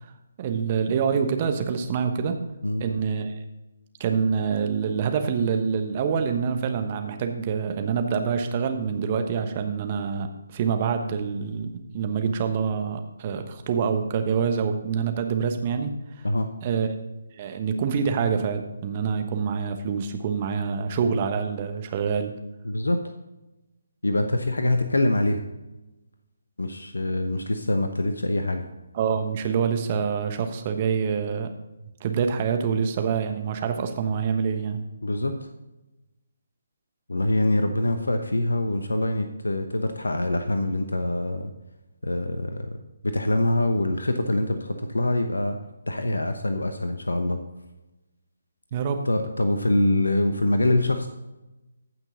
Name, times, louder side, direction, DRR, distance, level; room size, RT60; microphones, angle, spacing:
voice 1, 0.4-2.4 2.8-3.3 4.0-16.3 16.6-16.9 17.3-22.3 28.9-31.5 32.0-34.8 48.7-49.0, right 6 dB, 30° right, 6 dB, 1.1 m, -26 dB
voice 2, 22.6-23.0 24.0-25.4 26.6-28.7 35.0-35.5 37.1-41.5 42.0-45.6 45.9-47.4 49.1-51.1, left 1 dB, 75° left, 7 dB, 0.9 m, -24 dB
15.0 x 6.1 x 3.8 m, 1.0 s
figure-of-eight pair, 145°, 0 cm